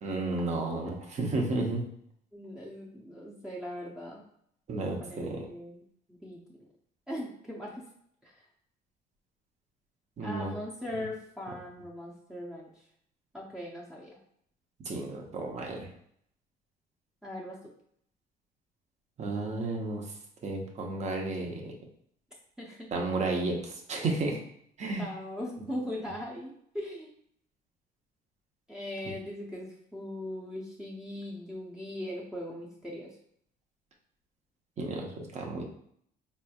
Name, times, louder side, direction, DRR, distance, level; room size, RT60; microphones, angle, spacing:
voice 1, 0.0-1.8 4.7-5.4 10.2-10.5 14.8-15.9 19.2-20.0 20.4-21.7 22.9-24.4 24.8-25.1 34.8-35.6, right 2 dB, 40° right, 1 dB, 0.9 m, -32 dB
voice 2, 2.3-4.2 4.8-5.8 6.1-6.4 7.1-7.9 8.2-8.4 10.2-12.7 13.3-14.2 17.2-17.6 22.6-22.9 25.0-27.1 28.7-33.1, left 1 dB, 5° right, -6 dB, 0.7 m, -39 dB
4.2 x 3.2 x 2.3 m, 0.67 s
cardioid pair, 110°, 17 cm